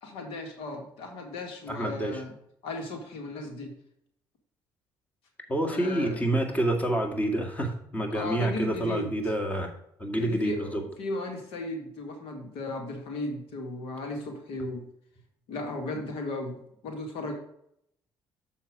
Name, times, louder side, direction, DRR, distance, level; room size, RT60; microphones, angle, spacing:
voice 1, 0.0-2.3 2.6-3.7 5.7-6.2 8.1-9.2 10.1-14.8 15.5-17.3, left 2 dB, 80° left, 3 dB, 1.9 m, -35 dB
voice 2, 1.7-2.2 5.5-9.7 10.0-10.5, right 1 dB, 15° left, 2 dB, 2.0 m, -28 dB
7.3 x 5.7 x 4.7 m, 0.72 s
supercardioid pair, 85°, 9 cm